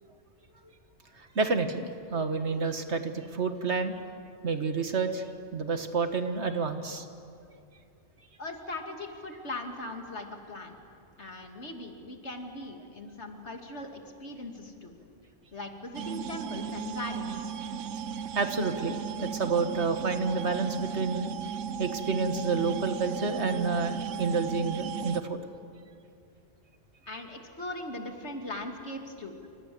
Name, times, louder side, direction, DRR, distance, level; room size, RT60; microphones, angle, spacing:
voice 1, 1.2-4.0 4.4-5.3 5.5-7.1 18.4-21.3 21.8-25.4, right 4 dB, 65° right, 7 dB, 1.9 m, -29 dB
voice 2, 8.4-10.8 11.2-15.0 15.5-17.5 27.1-29.3, left 2 dB, 65° left, 3 dB, 2.8 m, -39 dB
sound 1, 15.9-25.2, right 7 dB, 80° right, 1.2 m, -35 dB
29.0 x 26.0 x 7.8 m, 2.5 s
omnidirectional pair, 1.3 m